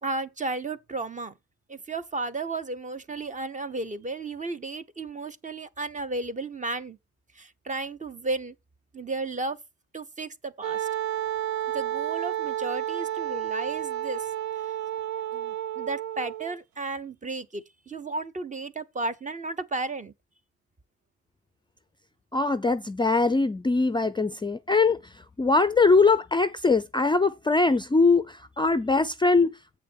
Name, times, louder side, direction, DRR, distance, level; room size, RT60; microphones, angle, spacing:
voice 1, 0.0-1.3 1.7-7.0 7.3-8.5 8.9-9.6 9.9-10.9 11.7-14.3 14.6-14.7 15.3-20.1, right 3 dB, 25° right, 0.8 m, -33 dB
Wind instrument woodwind instrument, 10.6-16.6, right 12 dB, 70° right, 0.5 m, -31 dB
voice 2, 22.3-25.0 25.4-29.8, left 3 dB, 15° left, 0.4 m, -22 dB
8.1 x 6.7 x 4.5 m
cardioid pair, 90°, 30 cm